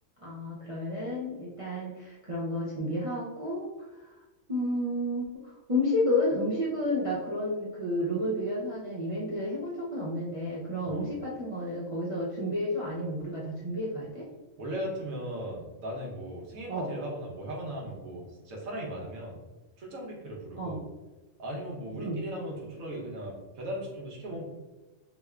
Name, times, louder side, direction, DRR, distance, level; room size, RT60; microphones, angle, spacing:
voice 1, 0.2-3.7 4.0-4.1 4.5-14.3 16.7-16.9 20.6-20.8 22.0-22.2, left 1 dB, 55° right, -7 dB, 0.3 m, -31 dB
voice 2, 14.6-19.4 19.8-20.8 21.4-24.4, right 1 dB, 90° right, -3 dB, 1.3 m, -38 dB
3.4 x 3.2 x 2.3 m, 1.1 s
omnidirectional pair, 1.4 m